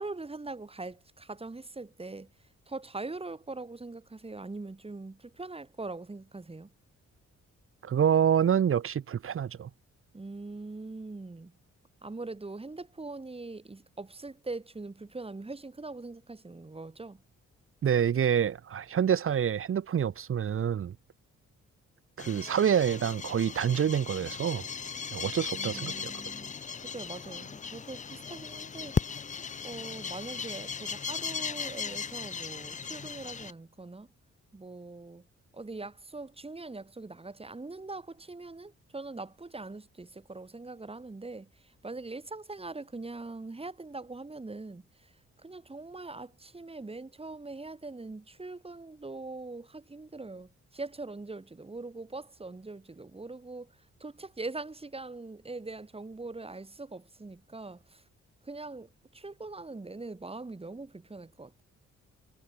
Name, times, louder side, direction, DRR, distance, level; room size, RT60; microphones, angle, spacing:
voice 1, 0.0-2.3 2.7-6.7 10.1-11.6 12.0-17.2 25.5-26.6 26.8-29.2 29.6-34.1 34.5-35.2 35.5-41.5 41.8-44.9 45.4-53.7 54.0-58.0 58.4-61.6, right 3 dB, 20° right, 1.9 m, -42 dB
voice 2, 7.8-9.7 17.8-21.0 22.2-24.7 25.1-26.1, right 8 dB, 45° right, 0.7 m, -27 dB
sound 1, 22.2-33.5, left 6 dB, 25° left, 0.4 m, -37 dB
cardioid pair, 80°, 30 cm